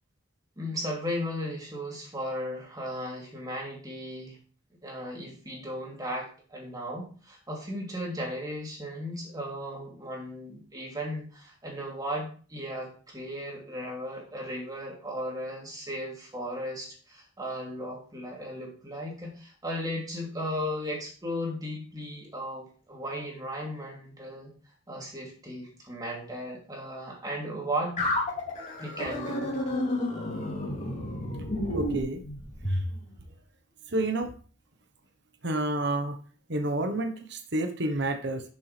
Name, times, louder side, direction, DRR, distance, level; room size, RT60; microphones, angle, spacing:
voice 1, 0.6-4.4 4.8-24.5 24.9-28.0 28.8-29.5, equal, 20° right, -2 dB, 3.1 m, -36 dB
sound 1, 28.0-32.9, left 1 dB, 40° left, 2.9 m, -31 dB
voice 2, 31.7-32.2 32.7-32.8 33.9-34.3 35.4-36.1 36.5-38.4, right 1 dB, 65° right, 6 dB, 1.2 m, -29 dB
11.0 x 7.0 x 3.4 m, 0.41 s
head